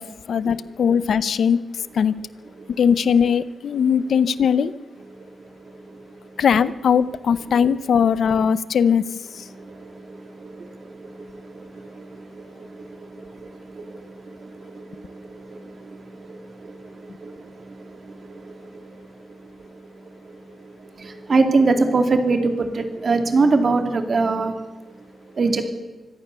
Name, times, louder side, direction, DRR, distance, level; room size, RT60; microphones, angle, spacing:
voice 1, 0.0-1.6 1.9-2.1 2.8-4.7 6.4-9.0 9.3-9.4, left 7 dB, 75° left, 16 dB, 0.7 m, -19 dB
voice 2, 5.1-6.4 9.4-25.7, right 3 dB, 45° right, 6 dB, 2.5 m, -26 dB
24.5 x 16.5 x 6.9 m, 1.2 s
wide cardioid pair, 140°, 0 cm